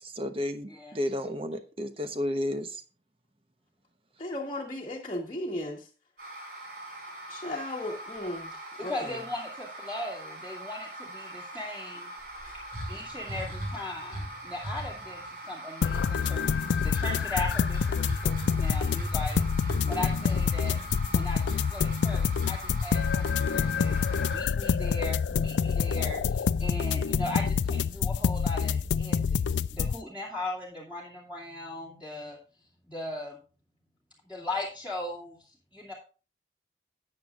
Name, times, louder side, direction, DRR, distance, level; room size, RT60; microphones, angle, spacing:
voice 1, 0.0-2.8, left 1 dB, 30° right, 1.0 m, -32 dB
voice 2, 4.2-5.9 7.3-9.1 12.4-12.5, left 1 dB, 30° left, 1.4 m, -36 dB
sound 1, 6.2-24.4, right 1 dB, 60° right, 6.1 m, -39 dB
voice 3, 8.8-12.1 12.9-20.7 21.1-32.4 32.9-33.4 34.2-35.4 35.7-35.9, left 1 dB, 10° right, 2.5 m, -38 dB
sound 2, 15.8-30.0, left 6 dB, 85° left, 0.4 m, -27 dB
13.5 x 9.0 x 2.5 m
head